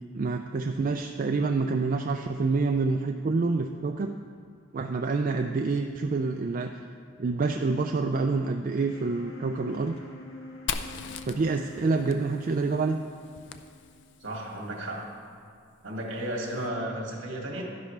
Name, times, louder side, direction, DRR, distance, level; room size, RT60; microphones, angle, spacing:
voice 1, 0.1-4.2 4.7-6.7 7.2-9.9 11.3-13.0, right 3 dB, 40° right, 4 dB, 0.3 m, -27 dB
sound 1, 8.9-14.8, left 1 dB, 85° left, 1.4 m, -47 dB
Fire, 10.7-14.4, left 6 dB, 60° left, 0.5 m, -39 dB
voice 2, 14.2-15.1 15.8-17.6, right 1 dB, 65° right, -1 dB, 2.0 m, -33 dB
11.5 x 10.5 x 3.3 m, 2.4 s
head